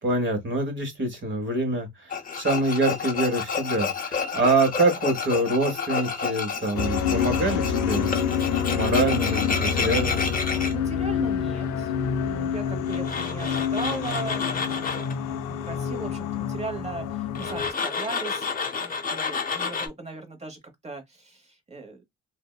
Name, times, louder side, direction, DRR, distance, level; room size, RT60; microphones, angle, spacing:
voice 1, 0.0-8.1 8.7-10.2, right 2 dB, 40° right, 1.2 m, -25 dB
Tools, 2.1-10.7 12.9-15.1 17.4-19.9, left 5 dB, 30° left, 0.6 m, -30 dB
sound 1, 6.7-17.7, left 7 dB, 85° left, 0.5 m, -27 dB
voice 2, 10.6-11.9 12.2-18.5 18.8-22.0, right 3 dB, 20° right, 1.0 m, -38 dB
2.6 x 2.1 x 2.2 m
cardioid pair, 90°, 30 cm